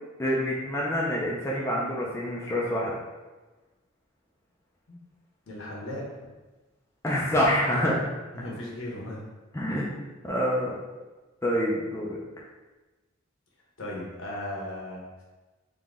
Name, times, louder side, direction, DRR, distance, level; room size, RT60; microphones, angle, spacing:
voice 1, 0.2-3.0 7.0-8.1 9.5-9.9 10.2-10.8 11.4-12.2, equal, 15° left, -5 dB, 0.5 m, -26 dB
voice 2, 5.5-6.1 8.3-9.2 13.8-15.2, left 1 dB, 70° left, -3 dB, 1.1 m, -36 dB
3.8 x 2.8 x 3.6 m, 1.2 s
head